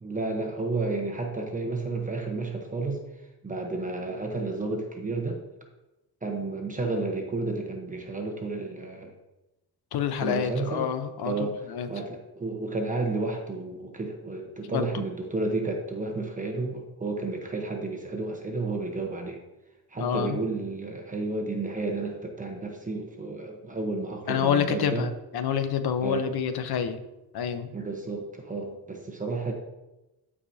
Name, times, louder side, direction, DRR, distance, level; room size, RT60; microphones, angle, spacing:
voice 1, 0.0-3.0 3.4-5.4 6.2-9.1 10.2-10.9 11.2-11.6 11.9-19.4 19.9-25.1 26.0-26.3 27.7-29.5, right 3 dB, 20° right, 2 dB, 1.0 m, -31 dB
voice 2, 9.9-11.9 14.7-14.9 20.0-20.4 24.3-27.0 27.3-27.7, left 8 dB, 60° left, 9 dB, 0.9 m, -28 dB
14.5 x 4.9 x 2.8 m, 0.98 s
cardioid pair, 155°, 42 cm